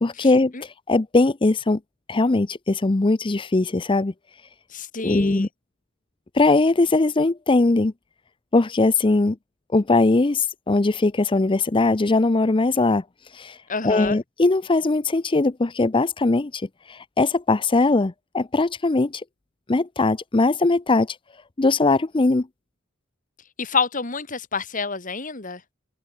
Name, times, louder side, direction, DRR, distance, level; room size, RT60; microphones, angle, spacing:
voice 1, 0.0-0.5 0.9-1.8 2.1-4.1 5.0-5.5 6.3-7.9 8.5-9.4 9.7-13.0 13.4-13.5 13.8-16.6 16.9-19.2 19.7-21.1 21.6-22.5, left 2 dB, 25° left, 0.6 m, -20 dB
voice 2, 4.7-5.5 13.7-14.2 23.6-25.6, left 4 dB, 40° left, 2.8 m, -27 dB
head